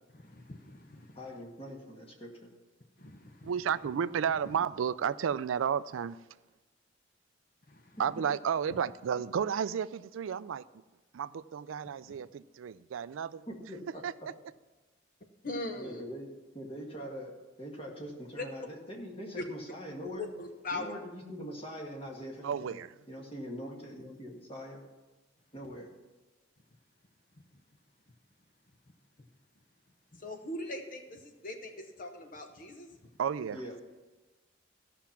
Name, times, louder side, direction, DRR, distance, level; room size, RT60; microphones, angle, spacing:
voice 1, 0.1-1.2 3.0-3.5 7.7-8.0 12.1-12.2 15.4-16.0 18.4-18.5 19.4-19.5 20.2-20.9 30.1-33.1, left 2 dB, 45° left, 5 dB, 0.9 m, -41 dB
voice 2, 1.2-2.5 13.5-14.0 15.8-17.3 17.6-20.3 20.7-22.8 23.1-24.8 25.5-25.9 33.5-33.8, equal, 30° left, 0 dB, 2.0 m, -43 dB
voice 3, 3.4-6.2 8.0-10.7 11.1-13.5 14.0-14.3 22.4-22.9 33.2-33.6, right 7 dB, 80° right, 17 dB, 0.4 m, -32 dB
15.0 x 5.9 x 5.8 m, 1.2 s
head